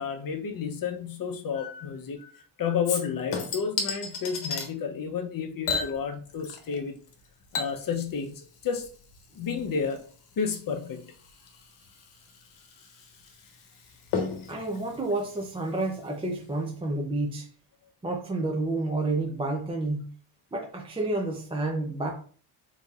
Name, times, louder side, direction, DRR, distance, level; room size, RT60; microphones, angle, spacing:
voice 1, 0.0-7.0 7.5-8.9 9.4-10.0 10.4-11.0 14.1-14.3, left 6 dB, 45° left, 0.7 m, -31 dB
Chink clink / Liquid, 2.8-4.7 5.6-6.8 7.1-16.1 16.4-16.5, left 5 dB, 85° left, 1.1 m, -36 dB
voice 2, 14.5-17.5 18.0-20.1 20.5-22.1, right 2 dB, 15° right, 0.4 m, -30 dB
3.9 x 3.9 x 2.3 m
cardioid pair, 140°, 50 cm